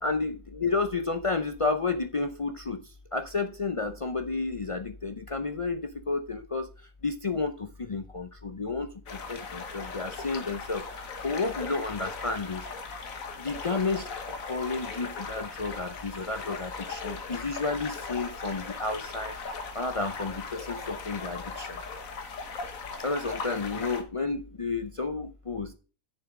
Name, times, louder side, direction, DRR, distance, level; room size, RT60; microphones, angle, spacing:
voice 1, 0.0-2.8 3.1-6.7 7.0-8.9 9.3-12.6 13.4-19.3 19.7-21.8 23.0-25.7, left 3 dB, 50° left, 0.3 m, -31 dB
sound 1, 9.1-24.0, left 4 dB, 85° left, 1.7 m, -38 dB
7.0 x 6.9 x 4.8 m
omnidirectional pair, 1.4 m